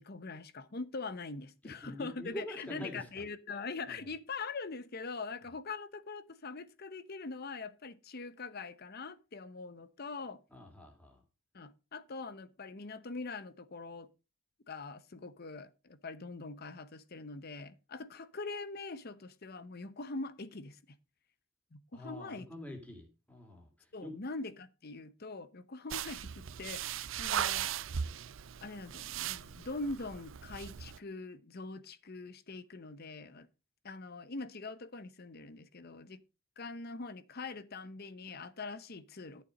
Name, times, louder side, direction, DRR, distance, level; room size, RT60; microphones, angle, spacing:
voice 1, 0.0-10.4 11.5-14.1 14.7-20.8 21.7-22.5 23.9-27.7 28.6-33.5 33.8-36.2 36.6-39.4, left 3 dB, 50° left, 0.9 m, -43 dB
voice 2, 1.6-3.2 3.9-4.1 10.5-11.2 21.9-24.2, left 1 dB, 5° left, 2.6 m, -46 dB
sound 1, 25.9-31.0, right 9 dB, 70° right, 0.5 m, -38 dB
11.5 x 6.9 x 5.2 m
head